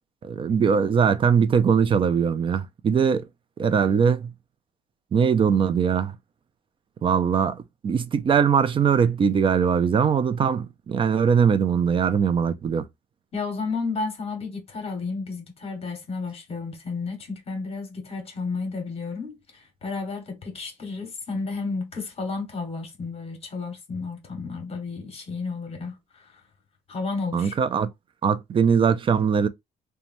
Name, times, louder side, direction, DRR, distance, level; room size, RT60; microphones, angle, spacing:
voice 1, 0.2-3.3 3.6-4.3 5.1-6.2 7.0-12.9 27.3-27.9 28.2-29.5, right 6 dB, 30° right, 0.4 m, -21 dB
voice 2, 13.3-26.4 26.9-27.6, left 4 dB, 35° left, 1.1 m, -32 dB
3.0 x 2.2 x 2.5 m
cardioid pair, 110°, 17 cm